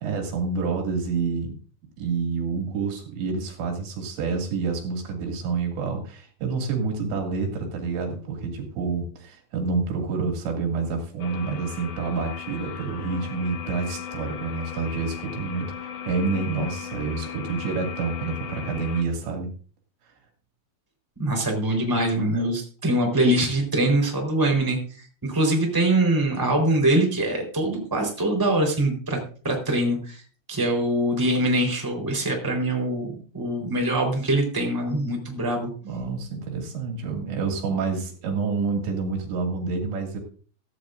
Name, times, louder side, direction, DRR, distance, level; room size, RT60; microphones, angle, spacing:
voice 1, 0.0-1.5 2.0-19.5 35.8-40.2, right 4 dB, 75° right, 2 dB, 4.6 m, -28 dB
sound 1, 11.2-19.0, left 8 dB, 75° left, 1.4 m, -37 dB
voice 2, 21.2-29.2 29.4-30.2 30.5-35.7, right 1 dB, 5° right, 0 dB, 3.6 m, -23 dB
15.5 x 14.5 x 2.6 m, 0.41 s
omnidirectional pair, 5.1 m